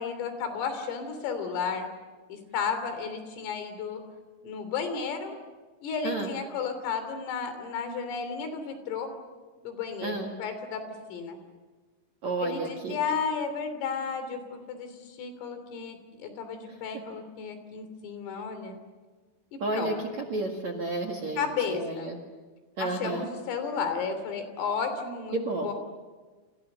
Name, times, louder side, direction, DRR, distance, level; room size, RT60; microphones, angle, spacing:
voice 1, 0.0-1.9 2.3-4.0 4.4-5.4 5.8-9.1 9.6-11.4 12.4-18.8 19.5-20.2 21.4-22.1 22.8-25.7, left 6 dB, 80° left, 8 dB, 5.8 m, -33 dB
voice 2, 12.2-13.0 19.6-22.2 22.8-23.3 25.3-25.7, right 3 dB, 50° right, 6 dB, 2.2 m, -31 dB
29.0 x 28.5 x 6.8 m, 1.4 s
omnidirectional pair, 5.9 m